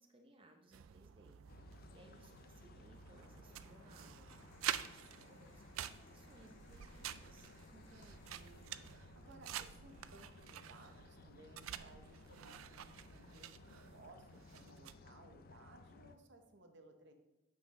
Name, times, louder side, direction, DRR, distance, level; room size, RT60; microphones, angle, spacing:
voice 1, 0.0-7.5, right 1 dB, 25° right, 2 dB, 0.7 m, -64 dB
sound 1, 0.7-15.0, right 11 dB, 90° right, 0.4 m, -49 dB
sound 2, 1.5-16.2, left 3 dB, 45° left, 0.4 m, -60 dB
sound 3, 4.3-9.4, left 3 dB, 65° left, 1.2 m, -69 dB
voice 2, 7.7-8.6 9.1-17.1, right 2 dB, 60° right, 6 dB, 0.8 m, -61 dB
8.2 x 5.9 x 3.7 m, 1.1 s
head